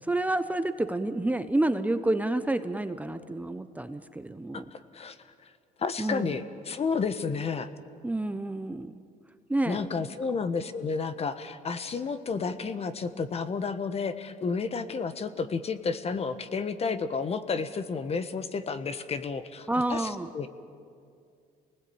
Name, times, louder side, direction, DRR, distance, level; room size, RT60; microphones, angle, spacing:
voice 1, 0.0-4.7 6.0-6.4 8.0-9.0 9.5-9.8 19.7-20.3, right 2 dB, 10° right, 9 dB, 0.9 m, -29 dB
voice 2, 4.5-5.2 5.8-7.7 9.6-20.7, left 5 dB, 35° left, 11 dB, 1.4 m, -31 dB
28.5 x 20.0 x 8.8 m, 2.4 s
cardioid pair, 110°, 17 cm